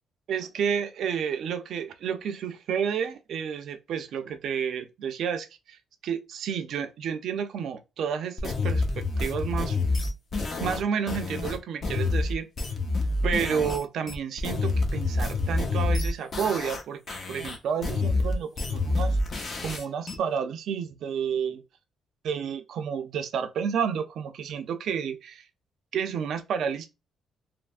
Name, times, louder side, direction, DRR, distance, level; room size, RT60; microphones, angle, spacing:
voice 1, 0.3-9.8 10.6-12.5 13.2-19.2 19.6-21.6 22.2-25.4 25.9-26.9, right 7 dB, 70° right, 0.5 m, -30 dB
sound 1, 8.4-13.8 14.1-16.8 17.1-20.1, left 3 dB, 45° left, 0.7 m, -28 dB
3.3 x 2.1 x 2.4 m
cardioid pair, 90°, 0 cm